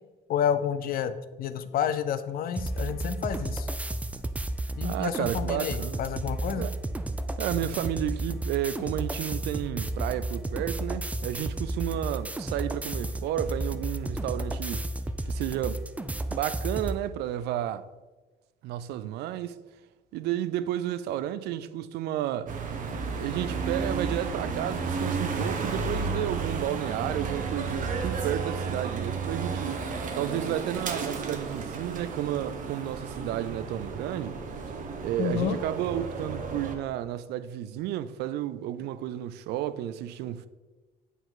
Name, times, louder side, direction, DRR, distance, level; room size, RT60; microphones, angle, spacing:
voice 1, 0.3-3.7 4.8-6.7 35.2-35.6, left 8 dB, 60° left, 0.5 m, -30 dB
sound 1, 2.6-17.0, right 1 dB, 10° right, 0.3 m, -32 dB
voice 2, 4.8-6.0 6.6-6.8 7.4-14.9 15.3-15.8 16.3-17.8 18.6-19.6 20.1-22.5 23.1-29.9 30.1-34.4 35.0-40.5, right 12 dB, 80° right, 0.4 m, -32 dB
sound 2, 22.5-36.8, right 4 dB, 50° right, 0.9 m, -32 dB
8.0 x 4.6 x 3.8 m
cardioid pair, 110°, 17 cm